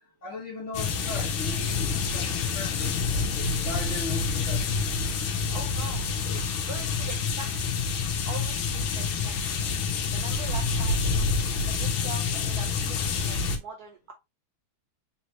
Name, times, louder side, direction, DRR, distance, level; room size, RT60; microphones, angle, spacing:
voice 1, 0.2-3.1 3.6-4.7, left 2 dB, 45° left, 1.3 m, -38 dB
sound 1, 0.7-13.6, left 5 dB, 85° left, 1.6 m, -27 dB
voice 2, 5.5-6.1 6.7-8.0 8.3-9.5 10.1-11.0 11.7-14.1, right 5 dB, 65° right, 1.0 m, -42 dB
4.2 x 3.0 x 2.9 m
omnidirectional pair, 2.2 m